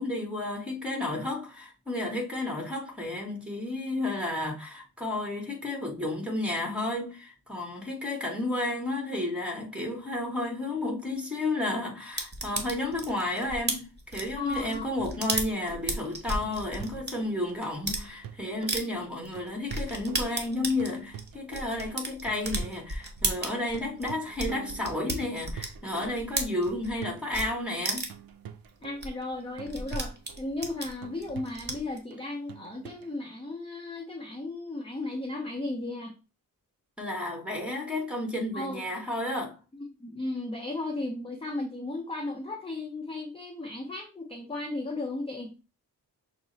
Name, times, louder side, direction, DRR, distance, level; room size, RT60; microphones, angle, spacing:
voice 1, 0.0-28.1 37.0-39.6, left 2 dB, 5° right, 1.5 m, -32 dB
sound 1, 12.2-17.1 17.6-18.0 18.7-18.8 19.2-19.3 19.7-27.0 27.3-27.5 27.8-28.3 28.7-28.8 29.0-29.1 29.3-32.0, right 2 dB, 25° right, 1.1 m, -33 dB
voice 2, 14.4-14.9 28.8-36.1 38.5-38.8 40.0-45.5, left 2 dB, 15° left, 0.8 m, -35 dB
sound 2, 15.0-33.2, right 10 dB, 60° right, 0.6 m, -47 dB
5.9 x 2.1 x 4.0 m
cardioid pair, 100°, 40 cm